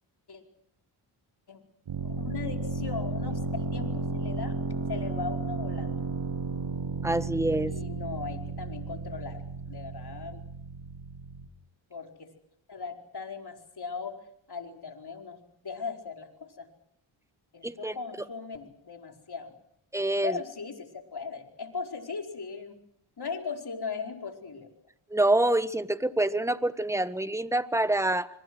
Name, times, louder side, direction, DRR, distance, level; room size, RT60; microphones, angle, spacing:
sound 1, 1.9-11.5, right 4 dB, 80° right, 8.0 m, -33 dB
voice 1, 2.0-4.6 4.9-6.0 7.7-10.4 11.9-12.3 12.7-14.2 14.5-16.7 17.5-19.5 20.2-22.8 23.2-24.7, left 5 dB, 50° left, 3 dB, 4.9 m, -38 dB
voice 2, 7.0-7.7 17.6-17.9 19.9-20.3 25.1-28.3, right 1 dB, 5° right, 12 dB, 1.4 m, -26 dB
26.0 x 23.5 x 6.3 m, 0.70 s
cardioid pair, 55°, 50 cm